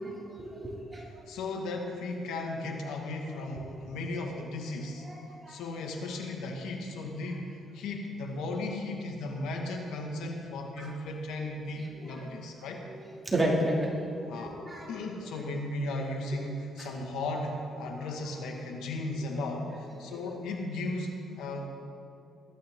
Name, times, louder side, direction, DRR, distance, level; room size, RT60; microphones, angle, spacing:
voice 1, 0.4-1.0 5.0-5.6 10.8-10.9 11.9-12.2 12.9-14.9 16.8-16.9 20.1-20.2, right 1 dB, 20° right, -3 dB, 2.8 m, -32 dB
voice 2, 1.0-5.1 5.5-12.8 14.3-14.6 14.9-21.7, left 2 dB, 90° left, 1 dB, 2.1 m, -36 dB
20.5 x 12.5 x 3.9 m, 2.5 s
cardioid pair, 90°, 0 cm